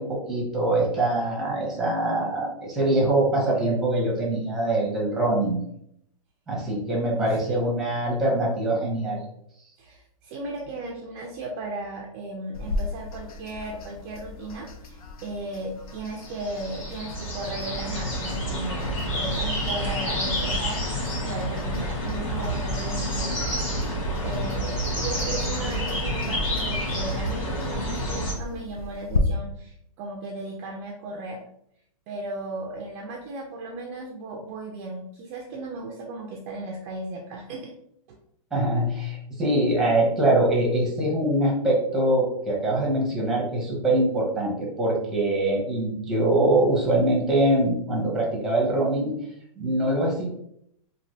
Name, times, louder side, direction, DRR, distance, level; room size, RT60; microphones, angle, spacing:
voice 1, 0.0-5.6 6.5-9.2 38.5-49.1 49.6-50.3, right 1 dB, ahead, -4 dB, 0.8 m, -23 dB
voice 2, 7.2-7.6 9.8-31.4 32.1-37.7 38.1-38.2, right 2 dB, 25° right, -1 dB, 0.4 m, -36 dB
sound 1, 12.5-29.2, left 3 dB, 80° left, 0.6 m, -37 dB
sound 2, 16.1-28.3, equal, 60° left, 1.4 m, -29 dB
3.1 x 2.5 x 2.6 m, 0.72 s
hypercardioid pair, 155°, 18 cm